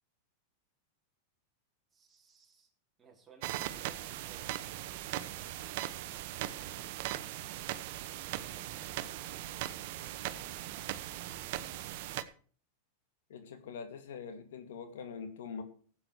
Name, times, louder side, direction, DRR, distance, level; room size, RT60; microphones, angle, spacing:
voice 1, 1.9-2.7 3.0-4.6 6.2-7.0 8.2-9.6, right 5 dB, 20° right, 2 dB, 3.1 m, -61 dB
sound 1, 3.4-12.2, right 14 dB, 60° right, 1.0 m, -39 dB
voice 2, 13.3-15.6, left 6 dB, 80° left, 8 dB, 2.1 m, -43 dB
15.0 x 8.6 x 4.7 m, 0.43 s
hypercardioid pair, 120°, 0 cm